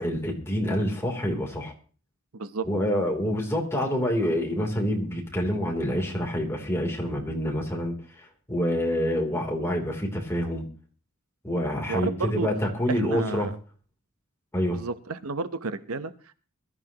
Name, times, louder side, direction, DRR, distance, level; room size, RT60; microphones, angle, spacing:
voice 1, 0.0-1.7 2.6-10.6 11.4-13.5 14.5-14.8, equal, 10° left, 0 dB, 3.3 m, -27 dB
voice 2, 2.3-2.7 11.9-12.5 12.9-13.5 14.7-16.3, right 4 dB, 80° right, 12 dB, 0.9 m, -31 dB
21.5 x 13.0 x 3.0 m, 0.38 s
head